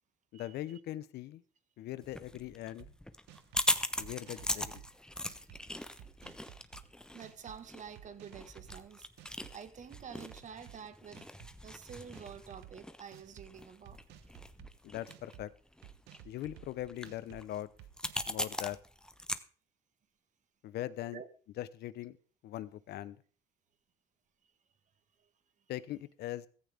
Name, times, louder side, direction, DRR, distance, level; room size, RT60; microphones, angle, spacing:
voice 1, 0.3-1.4 1.8-2.9 4.0-4.8 14.8-15.5 16.2-17.7 18.3-18.8 20.6-21.2 21.6-22.2 22.4-23.2 25.7-26.5, left 14 dB, 75° left, 0.9 m, -41 dB
sound 1, 2.0-19.4, left 1 dB, 5° left, 1.0 m, -40 dB
sound 2, 2.8-2.9 3.3-3.7 4.0-4.9 5.2-5.6 6.0-6.8 7.2-7.6 7.9-8.8 9.2-9.5 9.9-10.8 11.1-11.5 11.9-12.7 13.1-13.5 13.8-14.7 15.1-15.4 15.8-16.7 17.0-17.4 17.8-18.3, right 12 dB, 85° right, 1.2 m, -53 dB
voice 2, 7.1-9.1 9.5-11.2 11.6-14.0 21.1-21.3 25.2-25.3, right 7 dB, 45° right, 1.7 m, -48 dB
15.5 x 14.0 x 3.6 m
cardioid pair, 110°, 17 cm